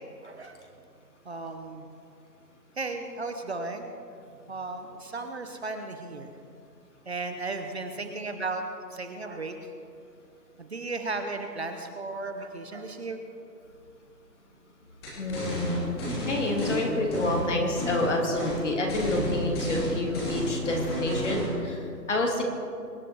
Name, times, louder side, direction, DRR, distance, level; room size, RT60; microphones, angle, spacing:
voice 1, 0.2-0.6 1.3-1.9 2.8-3.9 4.5-6.3 7.1-8.6 8.9-9.5 10.6-13.2, right 3 dB, 40° right, 6 dB, 1.1 m, -35 dB
sound 1, 15.0-16.8 17.1-18.1 18.4-18.6 18.9-21.5, left 1 dB, 15° left, 2.9 m, -31 dB
voice 2, 15.2-22.4, left 1 dB, 45° left, 1 dB, 3.2 m, -28 dB
24.0 x 10.5 x 4.7 m, 2.5 s
figure-of-eight pair, 165°, 49 cm